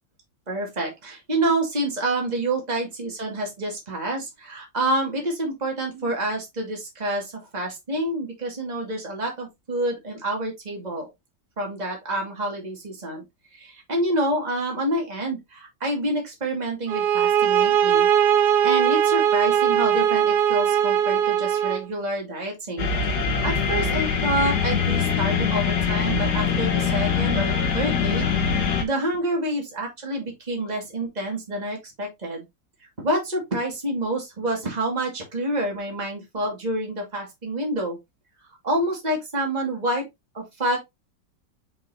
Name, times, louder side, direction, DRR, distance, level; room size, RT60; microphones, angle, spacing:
voice 1, 0.5-11.1 11.6-13.2 13.6-18.1 18.6-22.9 23.1-32.4 33.0-38.0 38.6-40.1 40.3-40.8, right 1 dB, 20° right, 2.4 m, -28 dB
sound 1, 16.9-21.9, right 9 dB, 70° right, 1.3 m, -20 dB
sound 2, 22.8-28.8, left 6 dB, 65° left, 1.8 m, -23 dB
5.9 x 5.6 x 2.8 m
omnidirectional pair, 1.9 m